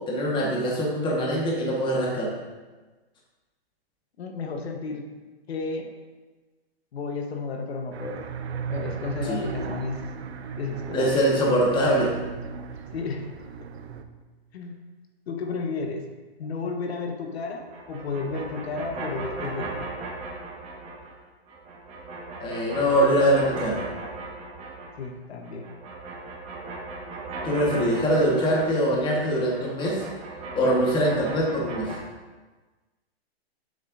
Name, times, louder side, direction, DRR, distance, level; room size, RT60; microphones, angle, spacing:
voice 1, 0.1-2.3 9.2-9.5 10.9-12.1 22.4-23.8 27.4-30.0 30.5-31.9, equal, 15° left, -3 dB, 1.3 m, -23 dB
voice 2, 4.2-5.0 5.5-5.9 6.9-8.3 8.7-10.1 10.6-11.1 12.9-13.3 14.5-14.8 15.3-16.0 16.4-19.9 25.0-25.7, left 4 dB, 75° left, 3 dB, 1.1 m, -32 dB
sound 1, 7.9-14.0, right 6 dB, 90° right, 0.7 m, -36 dB
sound 2, 17.6-21.2 21.4-25.1 25.4-32.0, right 3 dB, 20° right, 1.3 m, -38 dB
7.5 x 7.5 x 2.6 m, 1.3 s
hypercardioid pair, 145°, 31 cm